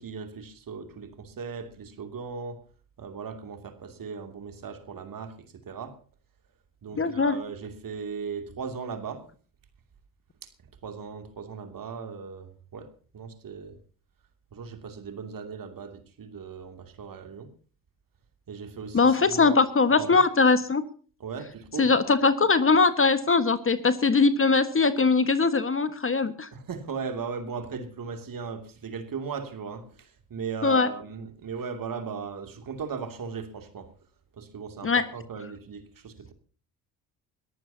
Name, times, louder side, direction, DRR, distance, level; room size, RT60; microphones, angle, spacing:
voice 1, 0.0-2.6 3.0-6.0 6.8-9.3 10.4-10.5 10.8-13.8 14.5-17.5 18.5-19.6 20.0-20.2 21.2-21.9 26.5-33.9 34.3-36.3, right 5 dB, 45° right, 7 dB, 2.7 m, -38 dB
voice 2, 7.0-7.4 18.9-20.8 21.8-26.5 30.6-30.9 34.8-35.0, left 4 dB, 30° left, 12 dB, 1.5 m, -21 dB
22.0 x 14.0 x 2.8 m, 0.41 s
hypercardioid pair, 50°, 44 cm